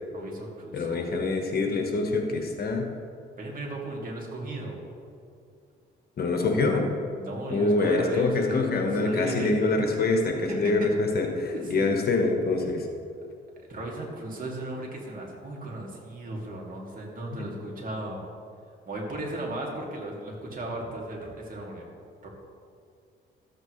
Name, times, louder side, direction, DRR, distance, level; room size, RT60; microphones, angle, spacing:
voice 1, 0.1-1.1 3.4-4.8 7.1-9.8 10.5-10.9 11.5-11.9 13.7-18.2 18.9-21.9 22.2-22.3, right 2 dB, 45° right, -2 dB, 2.4 m, -36 dB
voice 2, 0.7-2.9 6.2-6.9 7.5-12.9 17.4-17.5, left 3 dB, 50° left, 3 dB, 1.3 m, -25 dB
13.0 x 8.1 x 3.2 m, 2.4 s
cardioid pair, 90°, 20 cm